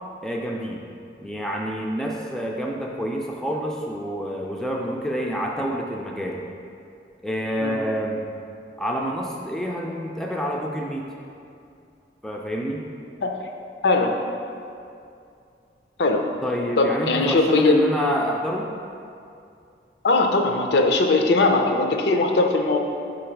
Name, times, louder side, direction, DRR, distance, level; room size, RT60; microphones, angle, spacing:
voice 1, 0.2-0.8 1.2-6.4 7.2-8.3 8.8-11.1 12.2-12.9 16.4-18.7, equal, 5° left, -1 dB, 0.3 m, -28 dB
voice 2, 13.8-14.2 16.0-16.3 16.8-17.8 20.0-22.8, left 3 dB, 70° left, 3 dB, 0.5 m, -20 dB
5.4 x 3.9 x 4.5 m, 2.5 s
head